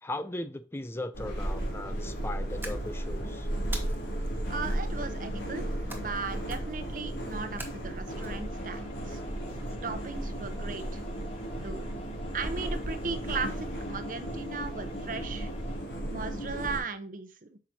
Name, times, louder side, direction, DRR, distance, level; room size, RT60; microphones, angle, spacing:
voice 1, 0.0-3.5, left 2 dB, 15° left, 0.4 m, -38 dB
sound 1, 1.1-16.8, right 1 dB, 75° left, 3.4 m, -35 dB
sound 2, 2.6-3.2 3.7-4.3 5.9-6.2 6.5-6.9 7.6-8.3, right 2 dB, 10° right, 1.2 m, -42 dB
voice 2, 4.5-5.6 5.9-9.2 9.8-11.0 11.6-11.8 12.3-15.5 16.1-17.6, right 4 dB, 50° right, 0.9 m, -37 dB
sound 3, 8.1-15.8, left 3 dB, 35° left, 0.9 m, -50 dB
8.5 x 6.1 x 2.8 m
head